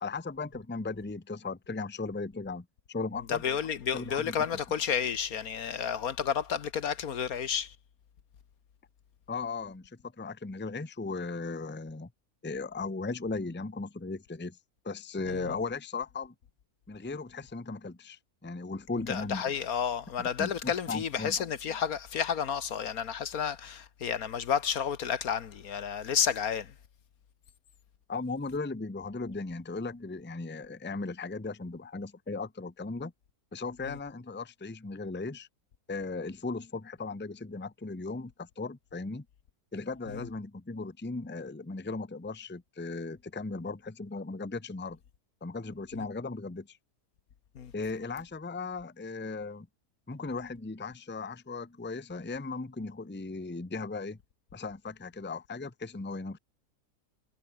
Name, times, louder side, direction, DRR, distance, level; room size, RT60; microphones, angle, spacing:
voice 1, 0.0-3.4 3.9-4.4 9.3-12.1 12.4-14.6 14.8-16.3 16.9-19.5 20.4-21.4 28.1-33.1 33.5-35.5 35.9-39.2 39.7-45.0 45.4-46.8 47.7-49.7 50.1-54.2 54.5-56.4, left 3 dB, 10° left, 0.8 m, -37 dB
voice 2, 3.3-7.7 15.3-15.5 19.1-26.7 33.8-34.0 40.1-40.2 46.0-46.1 47.5-47.7, left 8 dB, 70° left, 1.7 m, -31 dB
omnidirectional pair, 1.6 m